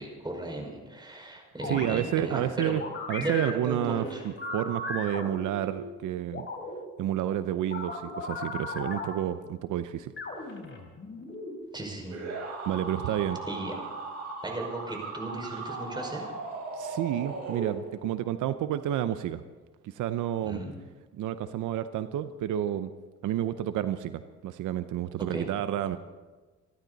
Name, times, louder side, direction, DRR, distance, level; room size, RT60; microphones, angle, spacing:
voice 1, 0.0-2.8 3.2-4.2 11.7-12.2 13.5-13.8 14.4-16.3 20.4-20.7 25.3-25.5, right 2 dB, 15° right, 1 dB, 5.3 m, -36 dB
sound 1, 1.6-2.0 2.6-5.8 6.3-6.8 7.7-9.1 10.2-11.5, left 2 dB, 40° left, 4.0 m, -37 dB
voice 2, 1.6-2.8 3.1-6.5 7.0-10.1 10.5-10.6 12.7-13.4 16.7-19.4 19.8-20.6 21.1-22.9 23.2-26.0, right 11 dB, 85° right, 11 dB, 0.8 m, -30 dB
sound 2, 12.1-18.1, right 3 dB, 60° right, 6.5 m, -37 dB
27.5 x 12.0 x 4.1 m, 1.3 s
cardioid pair, 90°, 30 cm